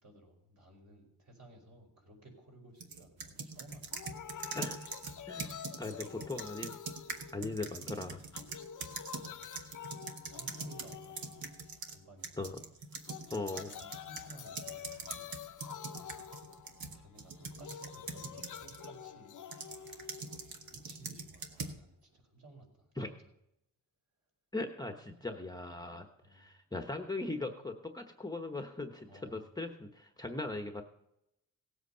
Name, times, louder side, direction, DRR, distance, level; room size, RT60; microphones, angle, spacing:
voice 1, 0.0-4.2 5.7-6.1 9.2-9.5 10.2-11.5 11.9-12.6 13.6-15.3 16.9-19.3 20.7-23.0 25.1-25.3 26.2-26.5 29.1-29.4, right 1 dB, 50° right, 1 dB, 4.7 m, -56 dB
sound 1, 2.8-12.0 12.2-18.9 19.5-21.8, right 4 dB, 75° right, 1.5 m, -43 dB
Auto Tune Sample, 3.9-7.9 8.2-12.0 12.9-20.9, left 8 dB, 60° left, 0.7 m, -48 dB
voice 2, 4.5-4.9 5.3-6.8 7.3-8.2 12.4-12.6 13.3-13.7 23.0-23.1 24.5-30.8, left 2 dB, 10° left, 5 dB, 0.9 m, -39 dB
17.5 x 8.1 x 5.6 m, 0.82 s
wide cardioid pair, 125°, 35 cm